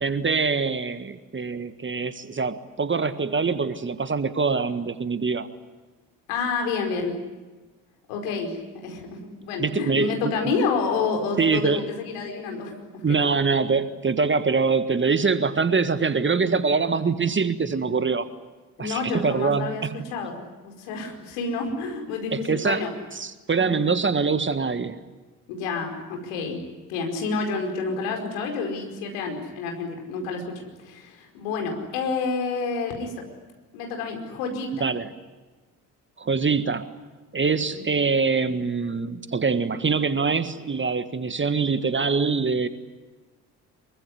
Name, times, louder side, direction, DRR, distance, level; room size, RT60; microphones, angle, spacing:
voice 1, 0.0-5.5 9.6-10.3 11.4-11.9 13.0-18.3 18.8-20.0 22.3-22.8 23.2-25.0 34.8-35.1 36.2-36.9 37.3-42.7, right 4 dB, 25° right, 12 dB, 1.7 m, -24 dB
voice 2, 6.3-7.1 8.1-13.0 18.8-22.9 23.5-23.9 25.5-26.6 26.9-33.2 33.7-34.9 37.7-37.8, left 4 dB, 70° left, 3 dB, 5.1 m, -29 dB
25.0 x 23.5 x 10.0 m, 1.2 s
figure-of-eight pair, 50°, 46 cm